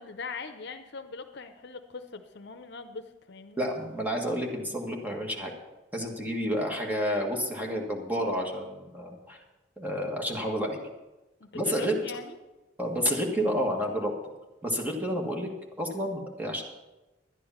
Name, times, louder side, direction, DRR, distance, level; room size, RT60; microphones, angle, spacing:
voice 1, 0.0-3.7 11.4-12.4, left 4 dB, 60° left, 9 dB, 0.8 m, -41 dB
voice 2, 3.6-5.5 5.9-9.4 9.8-10.8 11.5-12.0 12.8-14.1 14.6-15.5 15.8-16.6, equal, 10° right, 0 dB, 1.6 m, -30 dB
11.0 x 10.0 x 5.8 m, 1.1 s
head